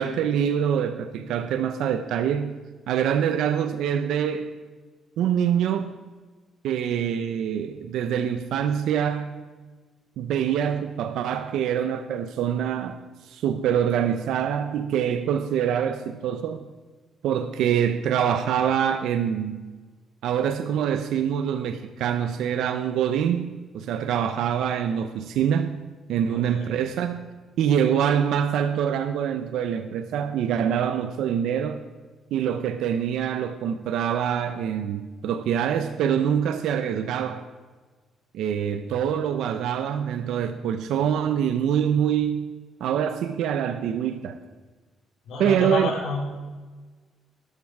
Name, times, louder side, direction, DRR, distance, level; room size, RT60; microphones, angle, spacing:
voice 1, 0.0-2.6 2.9-4.5 5.2-5.9 6.6-9.3 10.2-13.0 13.3-16.6 17.2-19.6 20.2-25.8 26.1-27.3 27.6-31.8 32.3-37.4 38.3-42.5 42.8-44.4 45.4-45.9, right 8 dB, 80° right, 9 dB, 0.8 m, -25 dB
voice 2, 26.3-26.7 45.2-46.2, left 3 dB, 80° left, -1 dB, 3.9 m, -29 dB
13.5 x 12.0 x 4.8 m, 1.3 s
cardioid pair, 140°, 0 cm